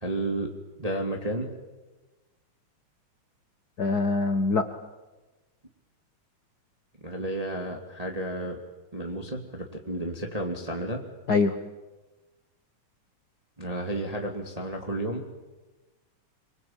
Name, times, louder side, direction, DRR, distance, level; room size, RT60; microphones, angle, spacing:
voice 1, 0.0-0.5 0.8-1.5 7.0-8.6 8.9-11.0 13.6-15.2, right 1 dB, 15° right, 2 dB, 2.2 m, -32 dB
voice 2, 3.8-4.6 11.3-11.5, left 3 dB, 75° left, 8 dB, 0.9 m, -23 dB
26.0 x 24.0 x 8.8 m, 1.2 s
omnidirectional pair, 3.7 m